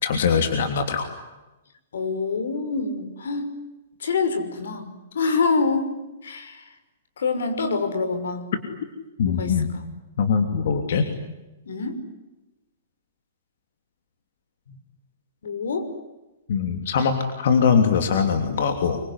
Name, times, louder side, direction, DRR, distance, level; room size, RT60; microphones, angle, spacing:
voice 1, 0.0-1.1 9.2-9.7 10.2-11.0 16.5-19.0, left 6 dB, 55° left, 6 dB, 3.0 m, -21 dB
voice 2, 1.9-3.5 4.0-6.0 6.2-6.6 7.2-8.5 9.4-9.6 11.7-12.0 15.4-15.9, left 4 dB, 85° left, 7 dB, 6.0 m, -26 dB
25.5 x 23.5 x 9.8 m, 1.0 s
hypercardioid pair, 175°, 0 cm